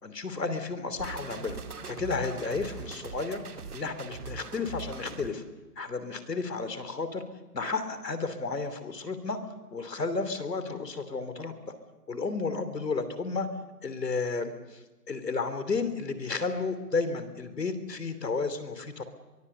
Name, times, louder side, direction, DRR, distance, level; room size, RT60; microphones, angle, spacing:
voice 1, 0.0-1.6 1.9-3.4 3.7-5.4 5.8-7.2 7.5-9.4 9.7-11.5 12.1-13.5 13.8-14.8 15.1-19.0, left 4 dB, 90° left, 10 dB, 3.1 m, -32 dB
sound 1, 1.0-5.3, right 5 dB, 65° right, 2.6 m, -41 dB
23.5 x 22.5 x 6.9 m, 1.2 s
hypercardioid pair, 155°, 47 cm